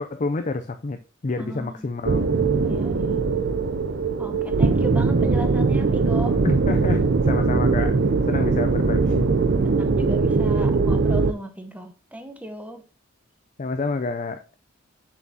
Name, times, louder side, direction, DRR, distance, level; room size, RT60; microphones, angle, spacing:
voice 1, 0.0-2.3 4.3-4.4 6.4-8.0 8.3-9.3 13.6-14.4, left 3 dB, 35° left, 0.5 m, -28 dB
voice 2, 1.4-1.9 2.6-3.2 4.2-6.4 9.6-12.8, equal, 5° right, 0.8 m, -35 dB
sound 1, 2.0-11.3, right 4 dB, 55° right, 0.5 m, -21 dB
7.2 x 6.2 x 2.8 m
head